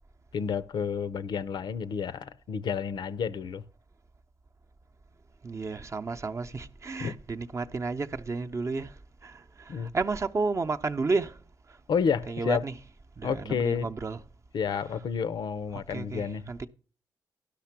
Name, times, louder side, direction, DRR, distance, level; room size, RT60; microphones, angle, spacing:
voice 1, 0.3-3.6 7.0-7.1 9.7-9.9 11.9-12.7 13.2-13.9 14.5-16.4, left 6 dB, 70° left, 0.6 m, -30 dB
voice 2, 5.4-8.9 9.2-11.4 12.3-12.7 13.2-14.2 15.7-16.7, right 4 dB, 40° right, 0.7 m, -32 dB
12.0 x 5.9 x 5.8 m
supercardioid pair, 55°, 8 cm